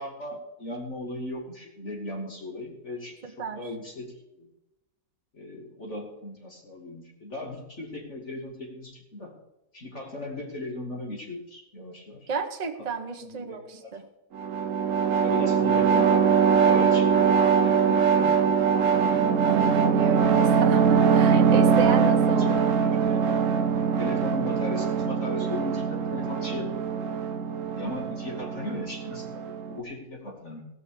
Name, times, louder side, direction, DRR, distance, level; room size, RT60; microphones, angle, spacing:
voice 1, 0.0-4.1 4.4-4.5 5.3-9.3 9.7-12.3 13.2-13.9 15.2-16.3 16.6-17.3 17.6-18.5 22.0-22.5 22.8-23.2 24.0-26.7 27.7-29.3 29.7-30.6, left 1 dB, 40° left, -1 dB, 2.9 m, -37 dB
voice 2, 12.3-14.0 15.4-15.5 19.4-22.6, right 5 dB, 25° right, 5 dB, 1.0 m, -31 dB
sound 1, 14.3-29.8, right 6 dB, 55° right, 1.1 m, -22 dB
18.0 x 6.0 x 7.0 m, 0.95 s
omnidirectional pair, 1.9 m